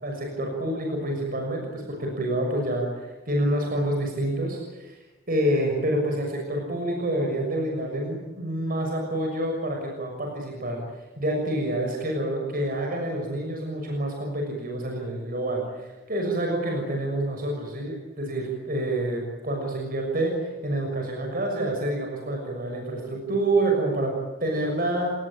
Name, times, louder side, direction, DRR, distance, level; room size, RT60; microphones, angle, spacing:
voice 1, 0.0-5.0 5.3-10.8 11.2-24.1 24.4-25.1, right 1 dB, 45° right, 1 dB, 6.6 m, -27 dB
29.0 x 20.0 x 9.2 m, 1.1 s
head